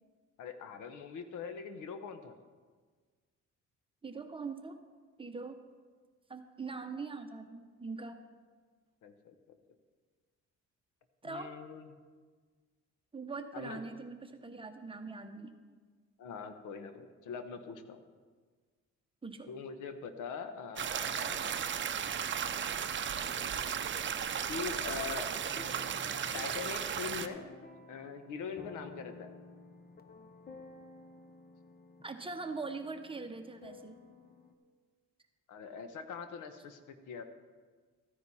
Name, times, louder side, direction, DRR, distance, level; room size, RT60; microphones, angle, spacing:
voice 1, 0.4-2.3 9.0-9.6 11.2-11.9 13.5-13.8 16.2-18.0 19.5-21.6 23.1-24.1 24.5-25.3 26.3-27.6 27.9-29.3 35.5-37.2, left 6 dB, 85° left, 8 dB, 1.1 m, -43 dB
voice 2, 4.0-4.7 5.2-5.6 6.3-8.2 11.2-11.5 13.1-15.6 19.2-19.5 32.0-34.0, right 4 dB, 20° right, 6 dB, 1.0 m, -42 dB
sound 1, 20.8-27.3, right 8 dB, 40° right, 0.7 m, -35 dB
sound 2, 25.5-34.5, left 3 dB, 30° left, 0.9 m, -53 dB
14.0 x 9.8 x 4.2 m, 1.5 s
cardioid pair, 90°, 30 cm